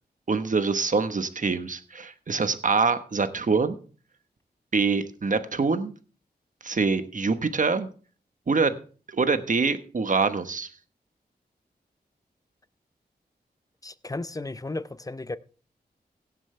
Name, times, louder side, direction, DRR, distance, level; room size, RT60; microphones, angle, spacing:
voice 1, 0.3-3.8 4.7-5.9 6.6-7.9 8.5-8.8 9.1-10.7, right 4 dB, 50° right, 1.2 m, -25 dB
voice 2, 13.8-15.4, left 2 dB, 20° left, 0.7 m, -34 dB
17.0 x 7.5 x 3.3 m
cardioid pair, 60°, 17 cm